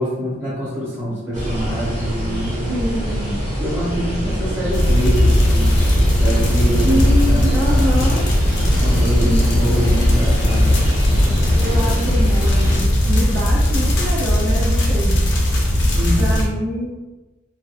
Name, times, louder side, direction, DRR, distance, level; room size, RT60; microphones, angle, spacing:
voice 1, 0.0-2.6 3.6-5.8 6.0-8.0 8.5-10.8 15.9-16.5, equal, 10° right, -10 dB, 1.1 m, -25 dB
sound 1, 1.3-12.8, equal, 40° right, 0.9 m, -24 dB
voice 2, 2.7-3.3 6.8-8.3 9.2-9.5 11.6-15.2 16.2-17.0, equal, 65° right, -5 dB, 0.5 m, -25 dB
sound 2, 4.7-16.5, left 1 dB, 65° left, 0.5 m, -17 dB
2.7 x 2.1 x 2.3 m, 1.2 s
head